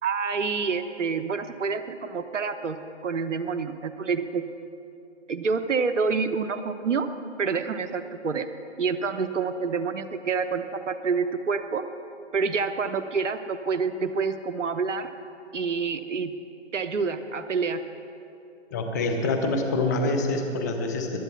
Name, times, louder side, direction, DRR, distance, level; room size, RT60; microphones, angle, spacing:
voice 1, 0.0-2.8 3.0-4.4 5.3-7.1 7.4-8.5 8.8-11.8 12.3-15.1 15.5-16.3 16.7-17.8, right 5 dB, 75° right, 9 dB, 1.0 m, -27 dB
voice 2, 18.7-21.1, left 2 dB, 15° left, 5 dB, 0.8 m, -26 dB
21.5 x 8.1 x 7.1 m, 2.7 s
hypercardioid pair, 155°, 37 cm